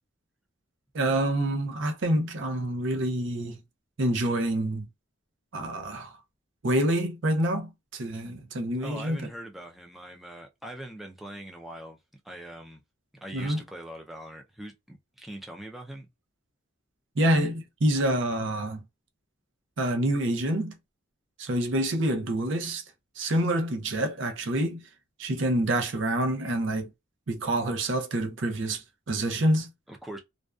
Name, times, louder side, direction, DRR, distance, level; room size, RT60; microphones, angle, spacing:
voice 1, 0.9-3.6 4.0-4.9 5.5-6.1 6.6-9.3 13.3-13.6 17.2-18.8 19.8-20.8 21.4-22.8 23.2-24.8 25.2-26.9 27.3-29.7, right 1 dB, 65° right, 0.6 m, -27 dB
voice 2, 8.8-12.0 12.2-12.8 13.2-16.1 29.9-30.2, right 1 dB, ahead, 0.4 m, -42 dB
2.5 x 2.2 x 2.3 m
head